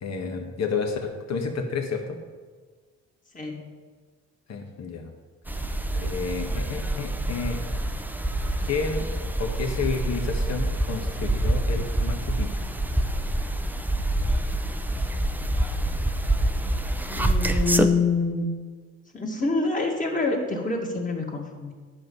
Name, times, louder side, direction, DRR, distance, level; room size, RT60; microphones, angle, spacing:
voice 1, 0.0-2.2 4.5-5.1 5.9-7.6 8.6-9.1 9.4-12.7, left 4 dB, 60° left, 4 dB, 1.6 m, -30 dB
voice 2, 3.3-3.7 17.1-18.5 19.1-21.7, left 3 dB, 25° left, 0 dB, 2.1 m, -26 dB
sound 1, 5.5-17.9, right 1 dB, 5° right, 0.6 m, -26 dB
11.0 x 6.4 x 5.5 m, 1.5 s
cardioid pair, 90°, 30 cm